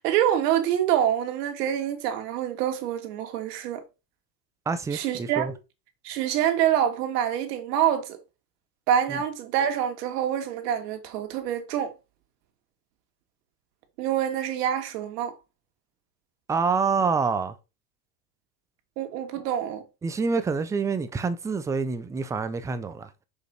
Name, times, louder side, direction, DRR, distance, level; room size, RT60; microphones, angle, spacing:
voice 1, 0.0-3.8 4.9-5.5 6.0-8.2 8.9-11.9 14.0-15.3 19.0-19.8, right 10 dB, 75° right, 2.0 m, -26 dB
voice 2, 4.7-5.5 9.1-9.2 16.5-17.5 20.0-23.1, right 5 dB, 10° right, 0.3 m, -27 dB
6.4 x 5.2 x 4.4 m
supercardioid pair, 120°, 48 cm